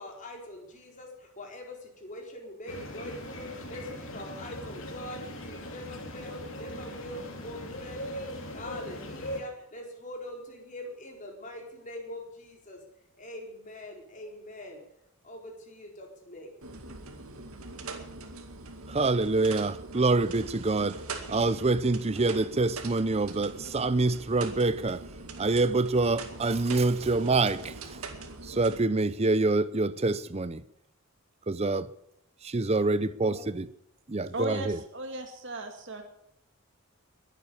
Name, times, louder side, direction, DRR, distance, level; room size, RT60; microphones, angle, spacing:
voice 1, 0.0-12.8 13.2-14.8 15.2-16.5, left 1 dB, 35° left, 4.3 m, -43 dB
sound 1, 2.7-9.4, left 1 dB, 60° left, 3.2 m, -40 dB
sound 2, 16.6-28.8, right 3 dB, 75° right, 2.2 m, -42 dB
voice 2, 18.9-21.0 21.3-25.0 25.4-28.0 28.5-30.6 31.5-31.9 32.4-33.7 34.1-34.8, right 3 dB, 30° right, 0.6 m, -26 dB
voice 3, 34.3-36.0, right 1 dB, 55° right, 2.2 m, -37 dB
22.0 x 9.3 x 7.1 m
head